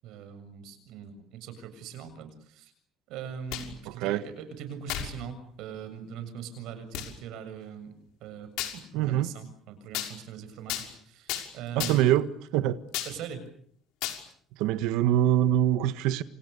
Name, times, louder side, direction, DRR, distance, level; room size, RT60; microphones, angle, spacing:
voice 1, 0.0-2.7 3.1-7.9 8.2-12.1 13.1-13.4, right 8 dB, 65° right, 7.2 m, -41 dB
sound 1, 3.3-3.8 4.9-5.1 5.8-5.9 6.9-7.1 8.6-8.8 9.9-10.1 10.7-10.9 11.3-11.5 11.8-12.2 12.9-13.1 14.0-14.2, left 12 dB, 80° left, 5.9 m, -33 dB
voice 2, 3.9-4.2 8.9-9.3 11.7-12.8 14.6-16.2, right 12 dB, 85° right, 1.5 m, -24 dB
29.5 x 28.5 x 6.9 m
cardioid pair, 175°, 0 cm